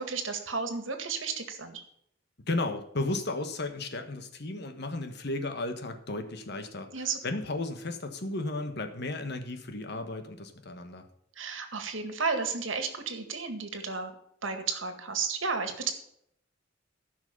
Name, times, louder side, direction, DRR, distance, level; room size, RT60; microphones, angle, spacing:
voice 1, 0.0-1.8 6.9-7.2 11.4-14.1 14.4-15.9, right 5 dB, 90° right, 7 dB, 1.9 m, -32 dB
voice 2, 2.5-11.1, left 2 dB, 60° left, 7 dB, 1.5 m, -34 dB
15.0 x 6.1 x 5.6 m, 0.71 s
head